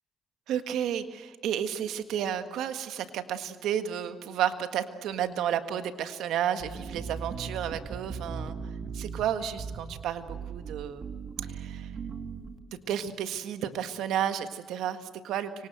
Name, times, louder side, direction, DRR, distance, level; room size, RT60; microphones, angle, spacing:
voice 1, 0.5-8.5 8.9-11.1 11.5-11.9 12.9-15.7, right 9 dB, 85° right, 9 dB, 1.6 m, -32 dB
sound 1, 6.6-12.6, right 5 dB, 55° right, 2.3 m, -38 dB
25.0 x 24.5 x 8.0 m, 1.5 s
cardioid pair, 90°, 0 cm